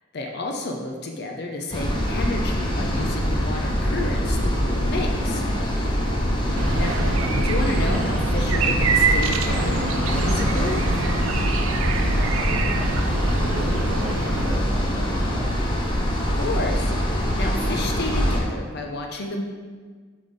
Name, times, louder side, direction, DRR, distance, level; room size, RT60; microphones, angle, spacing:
voice 1, 0.1-5.4 6.8-7.0 7.4-10.8 16.4-19.4, left 2 dB, 50° left, 2 dB, 0.6 m, -30 dB
sound 1, 1.7-18.4, equal, 25° left, 0.8 m, -24 dB
sound 2, 1.7-2.7 3.1-3.2 5.0-6.2 6.6-7.5, right 1 dB, 45° right, 1.4 m, -41 dB
voice 2, 6.5-6.9 11.5-15.5, equal, 20° right, -5 dB, 1.3 m, -36 dB
sound 3, 6.5-14.6, right 4 dB, 85° right, 0.5 m, -26 dB
5.4 x 5.1 x 4.0 m, 1.5 s
head